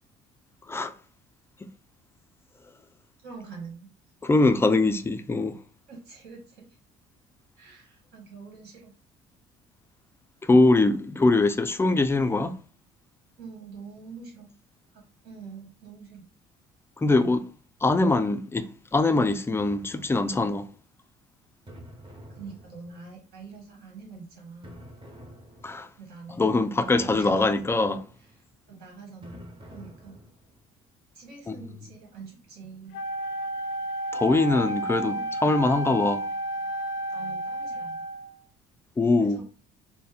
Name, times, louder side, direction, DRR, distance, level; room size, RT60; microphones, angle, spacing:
voice 1, 3.2-3.9 5.9-6.8 7.6-8.9 13.4-14.5 14.9-16.2 22.3-24.8 26.0-26.6 26.8-27.4 28.2-28.4 28.7-30.3 31.1-33.0 34.9-35.7 37.1-38.1 39.2-39.4, right 4 dB, 70° right, 1.8 m, -45 dB
voice 2, 4.2-5.6 10.4-12.5 17.0-17.4 17.8-20.7 25.6-25.9 26.4-28.0 31.5-31.6 34.1-36.3 39.0-39.4, left 2 dB, 15° left, 0.3 m, -22 dB
sound 1, 19.6-20.6 21.7-23.3 24.6-26.0 27.0-28.4 29.2-30.6, right 1 dB, 30° right, 1.0 m, -48 dB
Wind instrument woodwind instrument, 32.9-38.4, right 1 dB, 80° left, 0.5 m, -32 dB
4.2 x 2.1 x 3.5 m
cardioid pair, 110°, 17 cm